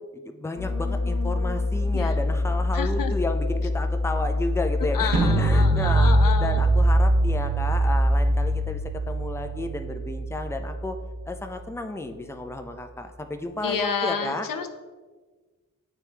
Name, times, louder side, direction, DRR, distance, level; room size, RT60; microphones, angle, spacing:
voice 1, 0.1-6.1 6.4-11.0 11.3-14.5, left 2 dB, 10° left, 6 dB, 0.5 m, -32 dB
sound 1, 0.6-11.9 12.2-12.5, left 2 dB, 50° left, 1.2 m, -27 dB
voice 2, 2.7-3.1 4.9-6.6 13.6-14.7, left 6 dB, 90° left, 7 dB, 0.6 m, -29 dB
sound 2, 5.1-11.1, right 2 dB, 85° right, 1.1 m, -23 dB
9.0 x 3.2 x 3.3 m, 1.4 s
cardioid pair, 50°, 33 cm